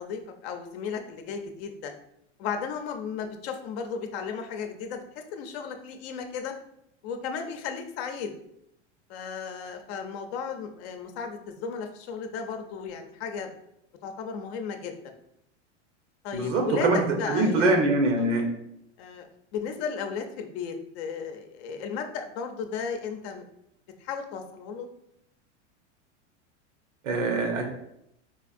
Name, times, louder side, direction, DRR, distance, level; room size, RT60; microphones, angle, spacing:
voice 1, 0.0-1.9 2.4-5.0 5.3-6.5 7.0-8.3 9.1-13.5 14.0-15.0 16.2-17.8 18.2-18.3 19.0-19.3 19.5-23.5 24.0-24.9, left 6 dB, 60° left, 5 dB, 0.6 m, -35 dB
voice 2, 16.3-18.5 27.0-27.7, right 2 dB, 85° right, 3 dB, 1.0 m, -23 dB
4.2 x 2.5 x 2.5 m, 0.77 s
hypercardioid pair, 110°, 36 cm